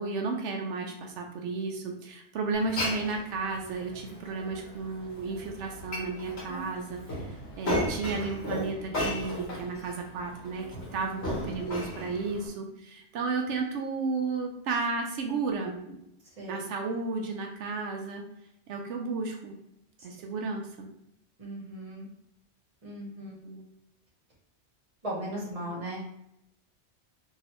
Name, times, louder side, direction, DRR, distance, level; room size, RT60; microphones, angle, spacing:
voice 1, 0.0-10.7 10.9-16.0 16.5-18.3 18.7-19.6 20.0-20.9 23.4-23.6 25.7-25.8, right 4 dB, 85° right, 2 dB, 0.9 m, -33 dB
Glass, 2.5-12.5, left 1 dB, 65° left, 1.4 m, -36 dB
voice 2, 21.4-22.1 22.8-23.3 25.0-26.0, right 1 dB, 35° right, -3 dB, 1.0 m, -37 dB
3.1 x 2.7 x 2.9 m, 0.77 s
omnidirectional pair, 1.2 m